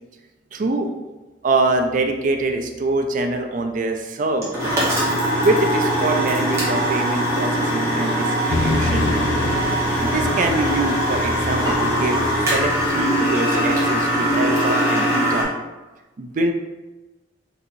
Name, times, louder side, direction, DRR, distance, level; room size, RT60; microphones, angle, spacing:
voice 1, 0.5-1.1 1.4-4.6 5.4-9.1 10.0-12.2 12.5-15.5 16.2-16.5, right 2 dB, 45° right, 5 dB, 0.4 m, -24 dB
sound 1, 4.4-15.4, equal, 15° right, 1.0 m, -21 dB
sound 2, 8.5-14.6, left 2 dB, 70° left, 0.5 m, -29 dB
4.1 x 2.7 x 2.5 m, 1.1 s
head